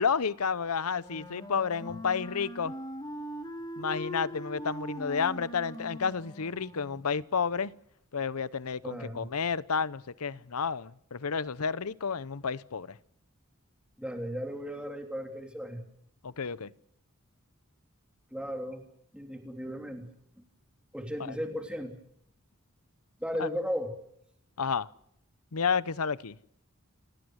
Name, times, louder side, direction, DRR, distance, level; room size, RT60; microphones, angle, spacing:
voice 1, 0.0-2.7 3.8-7.7 8.1-13.0 16.2-16.7 23.4-23.5 24.6-24.9 25.5-26.4, left 6 dB, 85° left, 0.8 m, -31 dB
Wind instrument woodwind instrument, 0.9-7.1, equal, 20° left, 4.0 m, -41 dB
voice 2, 8.8-9.3 14.0-15.8 18.3-18.8 19.1-20.1 20.9-21.9 23.2-23.9, equal, 5° right, 3.3 m, -35 dB
29.0 x 18.0 x 6.4 m
head